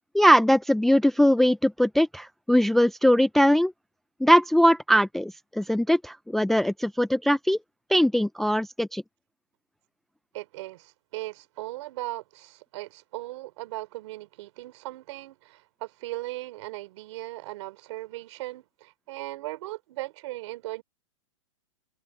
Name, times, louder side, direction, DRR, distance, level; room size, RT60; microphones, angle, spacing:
voice 1, 0.1-3.7 4.2-7.6 7.9-9.0, equal, ahead, 0.4 m, -21 dB
voice 2, 10.3-20.8, right 18 dB, 55° right, 4.0 m, -38 dB
hypercardioid pair, 145°, 18 cm